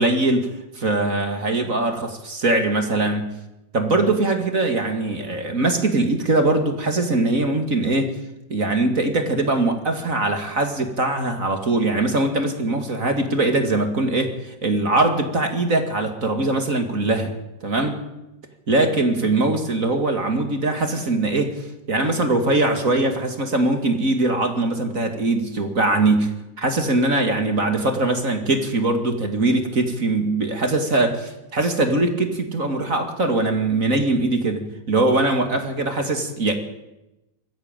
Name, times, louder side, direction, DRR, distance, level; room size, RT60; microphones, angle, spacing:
voice 1, 0.0-3.3 3.7-8.2 8.5-17.4 17.6-18.0 18.7-26.3 26.6-36.5, right 2 dB, 30° right, 5 dB, 2.1 m, -21 dB
21.5 x 15.0 x 9.0 m, 0.95 s
omnidirectional pair, 3.5 m